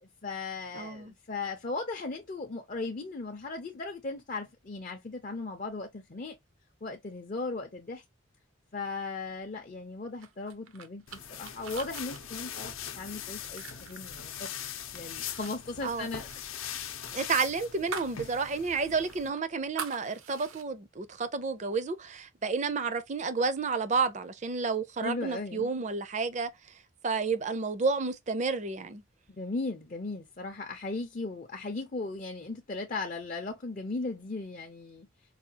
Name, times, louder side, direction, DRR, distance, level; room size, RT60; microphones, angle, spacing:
voice 1, 0.0-6.4 6.8-8.0 8.7-14.5 14.9-16.3 25.0-25.7 29.3-35.1, left 3 dB, 40° left, 0.5 m, -37 dB
voice 2, 0.8-1.1 15.8-16.1 17.1-26.5 27.0-29.0, right 4 dB, 35° right, 0.4 m, -31 dB
sound 1, 10.2-14.8 15.2-15.5 15.8-18.2 18.6-18.7 19.1-20.6, right 6 dB, 80° right, 0.6 m, -43 dB
sound 2, 11.1-19.3, left 9 dB, 80° left, 0.7 m, -41 dB
4.8 x 2.3 x 2.7 m
head